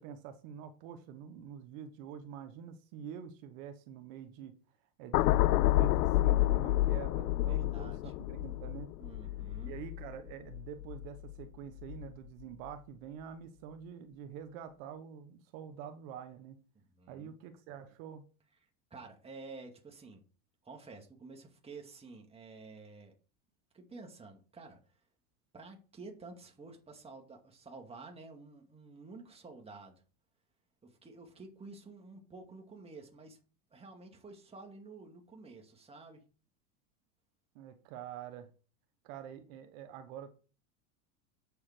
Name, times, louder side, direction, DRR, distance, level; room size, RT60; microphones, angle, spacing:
voice 1, 0.0-4.6 5.0-8.9 9.7-16.6 17.1-18.2 37.5-38.5 39.0-40.3, right 8 dB, 60° right, 1.3 m, -46 dB
sound 1, 5.1-11.4 11.8-12.1, left 16 dB, 85° left, 0.6 m, -29 dB
voice 2, 7.5-8.1 9.0-9.8 16.9-17.3 18.9-20.2 20.6-23.1 23.7-24.9 25.5-30.0 30.8-33.4 33.7-36.2, right 3 dB, 15° right, 2.1 m, -50 dB
7.6 x 6.9 x 5.0 m
supercardioid pair, 125°, 44 cm